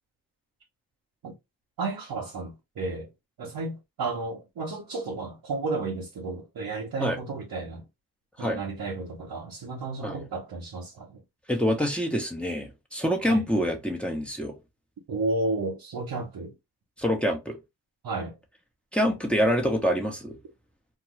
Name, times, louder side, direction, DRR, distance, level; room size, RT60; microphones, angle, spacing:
voice 1, 1.8-3.1 3.4-7.8 8.4-11.2 13.2-13.4 15.1-16.5 18.0-18.4, right 3 dB, 80° right, 0.9 m, -32 dB
voice 2, 11.5-14.6 17.0-17.6 18.9-20.4, equal, 5° left, 0.9 m, -26 dB
2.6 x 2.3 x 3.1 m
cardioid pair, 40°, 37 cm